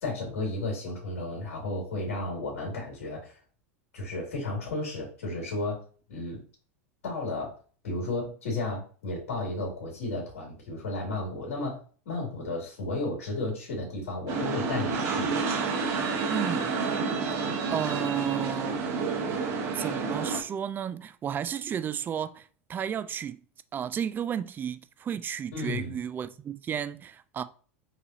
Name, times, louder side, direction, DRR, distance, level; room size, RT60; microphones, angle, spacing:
voice 1, 0.0-3.4 3.9-5.8 6.1-6.4 7.0-7.6 7.8-15.3 25.5-25.9, left 2 dB, 70° left, 2.2 m, -33 dB
sound 1, 14.3-20.4, right 4 dB, 50° right, 1.2 m, -29 dB
voice 2, 16.3-16.7 17.4-19.0 19.7-23.4 23.7-27.4, right 8 dB, 25° right, 0.3 m, -33 dB
4.6 x 3.3 x 2.7 m
hypercardioid pair, 90°, 8 cm